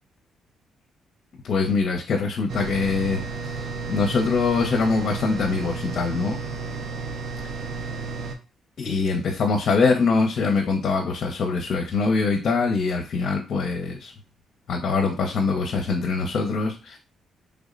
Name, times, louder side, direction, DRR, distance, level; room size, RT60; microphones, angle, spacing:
voice 1, 1.4-6.4 8.8-14.1 14.7-17.0, left 4 dB, 60° left, 2 dB, 0.6 m, -23 dB
sound 1, 2.5-8.4, right 4 dB, 65° right, 0.6 m, -32 dB
3.4 x 2.1 x 3.7 m, 0.31 s
cardioid pair, 90°, 0 cm